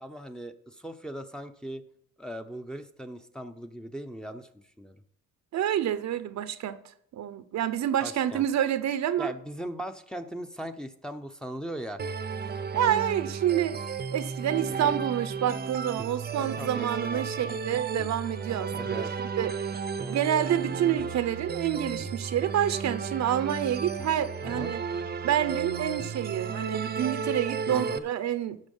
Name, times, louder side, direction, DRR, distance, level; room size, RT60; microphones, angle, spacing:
voice 1, 0.0-1.8 2.2-5.0 8.0-8.4 9.2-12.0 14.7-14.9 16.3-17.8 18.8-19.1 20.0-20.2 24.4-24.7 27.7-28.0, equal, ahead, 0.7 m, -39 dB
voice 2, 5.5-6.8 7.1-9.3 12.7-13.8 14.1-19.1 19.4-24.8 25.2-28.6, right 10 dB, 65° right, 0.8 m, -28 dB
sound 1, 12.0-28.0, right 5 dB, 30° right, 0.7 m, -33 dB
11.5 x 6.3 x 5.5 m
cardioid pair, 90°, 30 cm